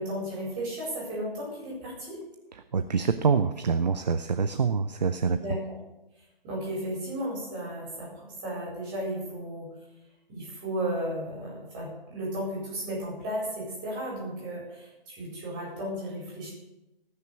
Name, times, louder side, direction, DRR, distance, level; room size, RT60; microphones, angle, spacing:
voice 1, 0.0-2.2 5.3-5.7 6.4-9.7 10.3-16.5, right 1 dB, 15° right, -4 dB, 4.4 m, -34 dB
voice 2, 2.7-5.4, right 5 dB, 45° right, 10 dB, 0.6 m, -25 dB
18.0 x 6.6 x 6.8 m, 0.95 s
hypercardioid pair, 170°, 31 cm